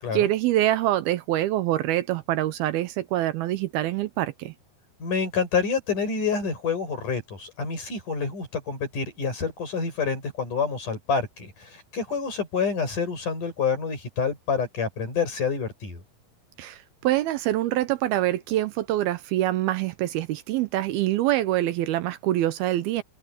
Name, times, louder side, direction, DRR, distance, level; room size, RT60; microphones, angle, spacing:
voice 1, 0.1-4.5 16.6-23.0, right 14 dB, 75° right, 2.5 m, -25 dB
voice 2, 5.0-16.0, left 5 dB, 50° left, 8.1 m, -28 dB
omnidirectional pair, 4.6 m